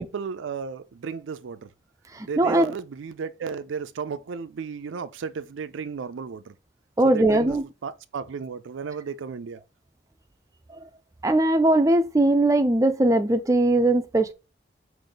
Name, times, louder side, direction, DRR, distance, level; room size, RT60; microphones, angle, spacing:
voice 1, 0.0-1.7 2.3-6.5 7.0-9.6, right 5 dB, 90° right, 0.4 m, -34 dB
voice 2, 2.4-2.7 7.0-7.6 11.2-14.3, right 1 dB, 15° right, 0.3 m, -20 dB
5.1 x 2.6 x 3.9 m
head